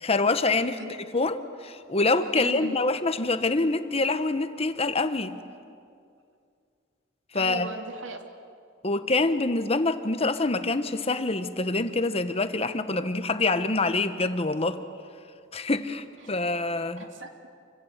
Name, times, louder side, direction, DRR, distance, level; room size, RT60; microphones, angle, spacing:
voice 1, 0.0-0.8 1.1-5.4 7.3-7.7 8.8-14.8 15.5-17.1, left 3 dB, 30° left, 10 dB, 1.1 m, -26 dB
voice 2, 2.3-2.7 7.3-8.2 17.0-17.5, right 2 dB, 85° right, 4 dB, 2.8 m, -38 dB
28.0 x 25.5 x 8.1 m, 2.3 s
head